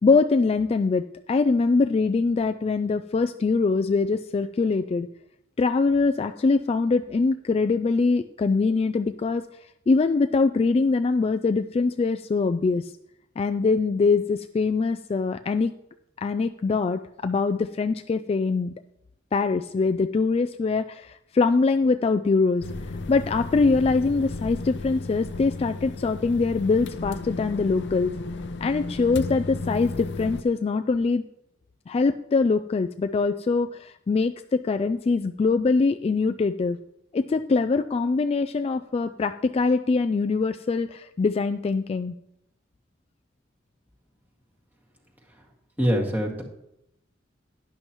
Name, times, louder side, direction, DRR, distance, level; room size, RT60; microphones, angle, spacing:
voice 1, 0.0-5.1 5.6-9.4 9.9-12.9 13.4-15.7 16.2-18.7 19.3-22.7 23.1-28.1 28.6-31.2 31.9-36.8 37.1-42.1, left 4 dB, 30° left, 8 dB, 0.3 m, -23 dB
sound 1, 22.6-30.4, left 3 dB, 65° left, 0.6 m, -34 dB
voice 2, 45.8-46.4, equal, 10° right, -1 dB, 1.9 m, -23 dB
12.0 x 10.5 x 3.0 m, 0.79 s
head